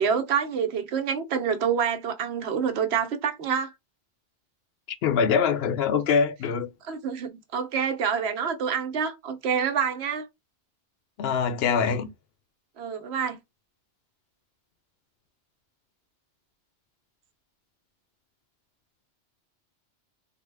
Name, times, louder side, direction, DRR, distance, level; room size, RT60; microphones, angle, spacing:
voice 1, 0.0-3.7 6.9-10.3 12.8-13.4, right 7 dB, 65° right, 1.0 m, -27 dB
voice 2, 5.0-6.7 11.2-12.1, left 6 dB, 65° left, 0.8 m, -23 dB
3.4 x 2.1 x 3.3 m
omnidirectional pair, 1.2 m